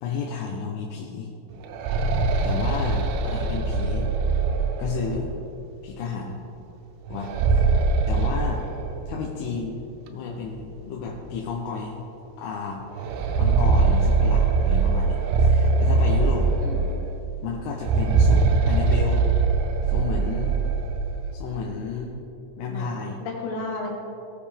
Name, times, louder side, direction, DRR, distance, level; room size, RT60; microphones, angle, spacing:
voice 1, 0.0-1.3 2.4-4.1 4.8-5.4 5.8-6.4 7.1-8.6 9.1-9.8 10.1-12.0 12.4-12.8 13.4-16.5 17.4-19.3 19.8-20.6 21.3-22.2 22.6-23.2, left 5 dB, 85° left, -1 dB, 3.4 m, -32 dB
sound 1, 1.5-5.3 7.1-9.3 9.6-9.7 10.6-10.7 11.2-11.3 12.9-17.1 17.7-21.1, right 4 dB, 80° right, 2.7 m, -22 dB
voice 2, 16.6-17.0 22.7-22.9 23.2-23.9, left 3 dB, 65° left, -2 dB, 3.9 m, -33 dB
18.5 x 7.3 x 3.4 m, 2.9 s
omnidirectional pair, 5.7 m